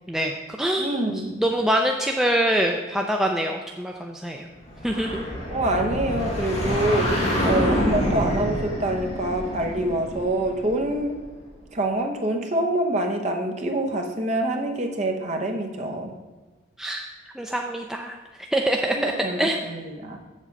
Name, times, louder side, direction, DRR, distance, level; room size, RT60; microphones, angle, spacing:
voice 1, 0.1-4.5 4.8-5.3 16.8-17.1 17.4-18.2 18.5-19.1 19.4-19.6, right 1 dB, ahead, 1 dB, 0.4 m, -25 dB
voice 2, 0.8-1.4 5.5-11.2 11.7-16.1 18.9-20.2, right 1 dB, 35° right, 3 dB, 0.9 m, -26 dB
sound 1, 4.7-11.3, equal, 35° left, 1.7 m, -27 dB
7.4 x 7.1 x 5.2 m, 1.3 s
head